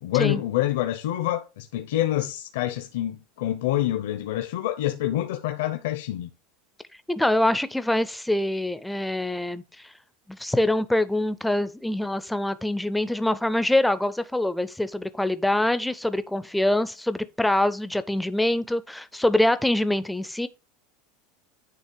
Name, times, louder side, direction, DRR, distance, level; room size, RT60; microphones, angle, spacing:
voice 1, 0.0-6.3, left 14 dB, 70° left, 0.7 m, -27 dB
voice 2, 7.1-9.9 10.3-20.5, left 1 dB, ahead, 0.4 m, -24 dB
9.5 x 3.3 x 4.5 m
supercardioid pair, 175°, 0 cm